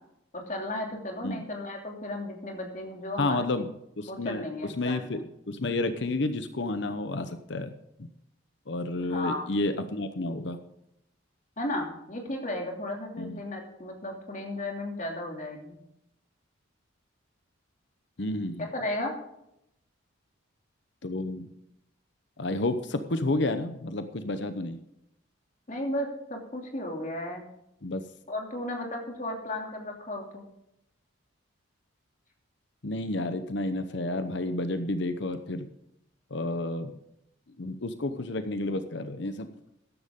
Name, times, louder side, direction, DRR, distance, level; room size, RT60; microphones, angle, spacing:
voice 1, 0.3-3.6 4.1-5.2 9.0-9.4 11.6-15.8 18.6-19.1 25.7-27.5 28.3-30.4, left 1 dB, 35° left, 1 dB, 2.7 m, -34 dB
voice 2, 3.2-3.7 4.0-4.4 4.8-7.7 8.0-8.1 8.7-10.6 13.2-13.4 18.2-18.7 21.0-21.5 22.4-24.8 27.8-28.0 32.8-35.7 36.3-36.9 37.6-39.5, left 2 dB, 60° left, 10 dB, 0.9 m, -30 dB
14.0 x 11.0 x 3.7 m, 0.81 s
head